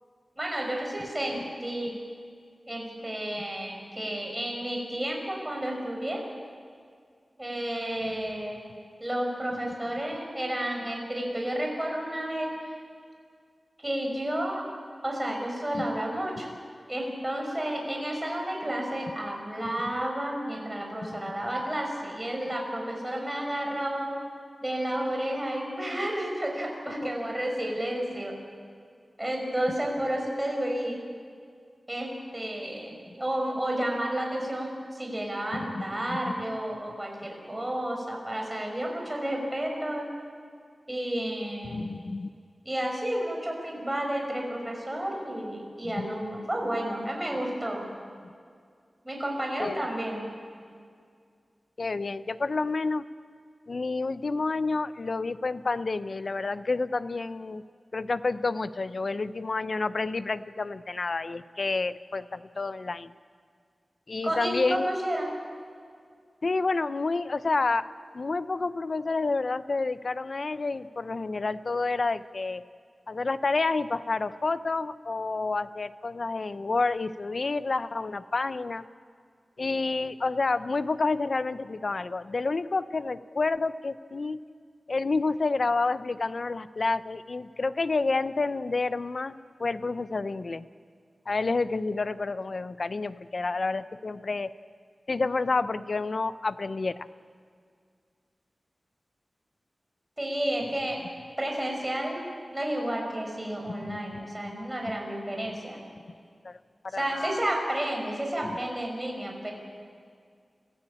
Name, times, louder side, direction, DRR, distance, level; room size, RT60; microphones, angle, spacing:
voice 1, 0.4-1.9 2.7-6.2 7.4-8.7 9.0-12.8 13.8-14.6 15.0-16.5 16.9-24.2 24.6-28.3 29.2-31.0 31.9-40.1 40.9-41.9 42.6-47.9 49.0-50.3 64.2-65.3 100.2-101.0 101.4-102.2 102.5-105.8 106.9-109.5, right 1 dB, 15° right, 0 dB, 6.0 m, -31 dB
voice 2, 35.5-36.2 36.7-36.8 41.6-42.3 45.8-46.1 49.6-49.9 51.8-53.0 53.7-57.6 57.9-63.1 64.1-64.9 66.4-67.9 68.1-72.6 73.1-78.8 79.6-84.4 84.9-90.7 91.3-94.5 95.1-97.1 103.7-104.2 104.5-104.6 106.4-106.6 106.8-107.4 108.4-108.5, left 3 dB, 55° left, 13 dB, 0.7 m, -29 dB
26.0 x 15.5 x 8.7 m, 2.1 s
wide cardioid pair, 80°, 0 cm